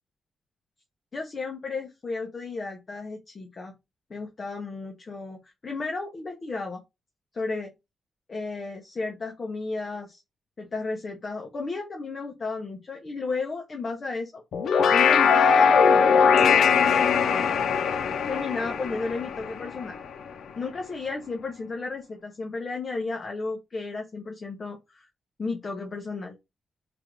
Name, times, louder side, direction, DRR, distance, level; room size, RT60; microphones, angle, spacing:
voice 1, 1.1-3.7 4.1-6.8 7.3-7.7 8.3-10.2 10.6-14.4 14.9-15.7 16.3-17.6 18.3-20.0 20.6-25.1 25.4-26.3, left 4 dB, 35° left, 2 dB, 0.7 m, -33 dB
sound 1, 14.5-20.1, left 6 dB, 80° left, 0.5 m, -21 dB
3.4 x 2.4 x 4.4 m, 0.23 s
wide cardioid pair, 170°, 0 cm